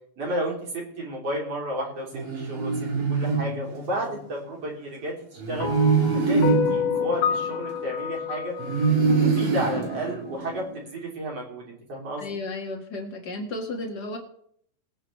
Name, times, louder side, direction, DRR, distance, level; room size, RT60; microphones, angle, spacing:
voice 1, 0.2-2.7 3.1-5.8 6.3-8.5 9.1-12.3, right 1 dB, 40° right, -2 dB, 4.1 m, -32 dB
sound 1, 2.1-4.2 5.4-8.1 8.6-10.8, right 4 dB, 60° right, 4.2 m, -25 dB
sound 2, 5.6-10.0, left 7 dB, 80° left, 2.9 m, -29 dB
voice 2, 12.2-14.2, left 2 dB, 35° left, 0 dB, 2.0 m, -33 dB
21.5 x 9.8 x 3.4 m, 0.66 s
omnidirectional pair, 4.3 m